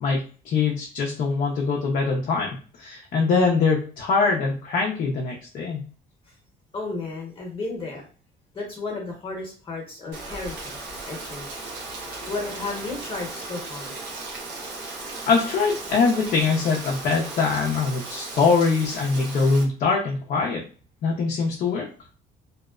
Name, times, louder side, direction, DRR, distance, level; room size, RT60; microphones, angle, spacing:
voice 1, 0.0-5.9 14.8-20.6 21.0-21.9, left 4 dB, 55° left, -1 dB, 0.5 m, -23 dB
voice 2, 6.7-8.0 8.5-10.8 11.1-11.5 12.3-14.0, left 3 dB, 35° left, -2 dB, 0.9 m, -33 dB
Rain, 10.1-19.6, right 3 dB, 75° right, 0.8 m, -36 dB
2.8 x 2.0 x 2.3 m, 0.39 s
cardioid pair, 110°, 17 cm